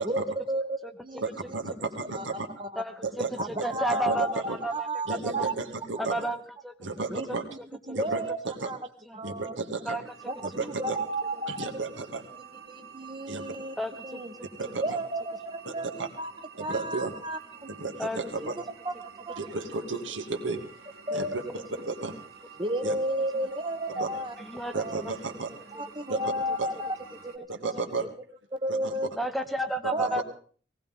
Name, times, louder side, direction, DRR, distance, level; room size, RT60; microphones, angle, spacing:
voice 1, 0.0-1.2 2.1-2.2 2.6-2.8 3.4-4.3 4.6-5.5 6.2-6.3 7.1-7.3 7.9-8.8 9.1-9.5 10.3-11.7 12.7-13.7 14.0-14.3 14.8-16.3 16.6-17.7 18.8-19.4 21.1-21.3 22.6-24.3 24.7-25.0 25.7-26.9 27.3-27.7 28.5-29.1 29.9-30.2, right 1 dB, 25° right, 6 dB, 1.0 m, -32 dB
voice 2, 1.2-2.5 3.0-3.3 3.9-4.6 5.1-6.1 6.8-7.4 7.9-8.7 9.2-10.0 10.4-11.0 11.6-12.2 13.3-13.4 14.6-14.8 15.7-16.1 16.6-17.1 17.8-18.6 19.4-20.6 21.1-22.1 22.8-22.9 23.9-24.1 24.7-25.5 26.1-26.2 26.6-26.7 27.5-28.1 28.7-28.9 29.8-30.2, right 3 dB, 85° right, 5 dB, 2.4 m, -33 dB
voice 3, 2.8-3.3 3.6-5.5 6.0-6.7 9.1-9.2 9.9-10.0 13.8-14.2 18.0-18.2 21.1-21.2 21.6-21.7 24.4-25.0 29.2-30.2, right 1 dB, ahead, 7 dB, 0.9 m, -32 dB
sound 1, 10.0-27.4, right 6 dB, 55° right, 2.4 m, -49 dB
19.0 x 18.0 x 3.8 m, 0.43 s
head